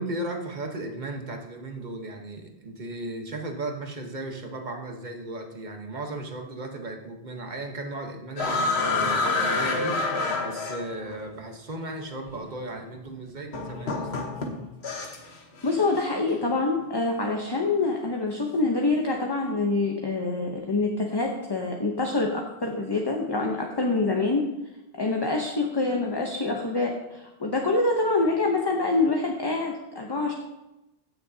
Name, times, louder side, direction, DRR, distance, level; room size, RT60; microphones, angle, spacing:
voice 1, 0.0-10.0 10.4-14.2, right 2 dB, 45° right, 3 dB, 1.2 m, -36 dB
sound 1, 8.4-11.2 12.3-12.4 13.5-15.3 15.6-16.0, left 3 dB, 85° left, 1.4 m, -27 dB
voice 2, 15.6-24.4 25.0-30.3, left 3 dB, 25° left, 1 dB, 0.8 m, -26 dB
15.5 x 6.5 x 2.8 m, 0.97 s
omnidirectional pair, 1.0 m